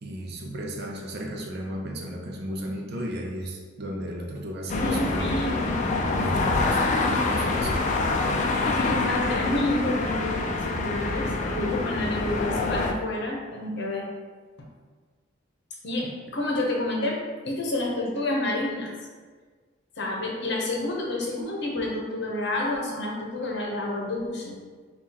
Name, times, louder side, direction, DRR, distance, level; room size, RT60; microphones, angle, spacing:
voice 1, 0.0-5.5 6.1-7.8, equal, 55° right, 0 dB, 0.5 m, -35 dB
sound 1, 4.7-12.9, left 3 dB, 40° left, 0.3 m, -26 dB
voice 2, 4.8-5.8 8.7-14.0 15.8-18.9 20.0-24.5, left 1 dB, 60° left, -2 dB, 0.8 m, -29 dB
5.4 x 2.4 x 2.9 m, 1.5 s
head